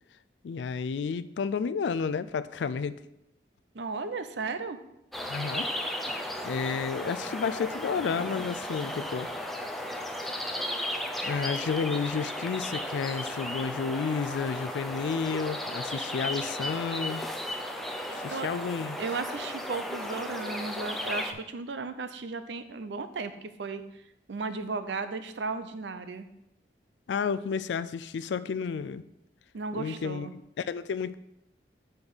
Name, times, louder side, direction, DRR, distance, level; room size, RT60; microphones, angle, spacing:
voice 1, 0.4-3.0 5.3-5.7 6.0-9.3 11.2-17.2 18.1-19.0 27.1-29.0 29.7-31.1, left 5 dB, 85° left, 15 dB, 0.4 m, -31 dB
voice 2, 3.7-4.8 18.3-18.6 19.0-23.8 24.3-26.3 29.5-30.3, right 4 dB, 90° right, 11 dB, 0.6 m, -35 dB
sound 1, 5.1-21.3, left 1 dB, ahead, 0.5 m, -35 dB
5.6 x 5.2 x 6.2 m, 0.86 s
head